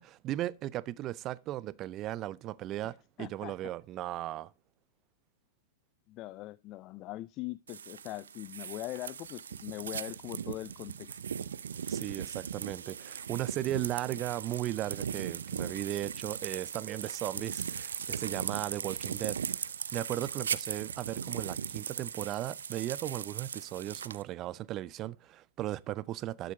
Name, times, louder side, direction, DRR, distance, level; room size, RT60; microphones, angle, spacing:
voice 1, 0.0-4.5 11.9-19.6 19.9-26.5, right 14 dB, 35° right, 0.6 m, -36 dB
voice 2, 3.2-3.6 6.1-11.2, left 16 dB, 40° left, 0.5 m, -41 dB
sound 1, 7.7-24.2, right 7 dB, 80° right, 0.6 m, -38 dB
12.0 x 6.8 x 4.8 m
hypercardioid pair, 110°, 0 cm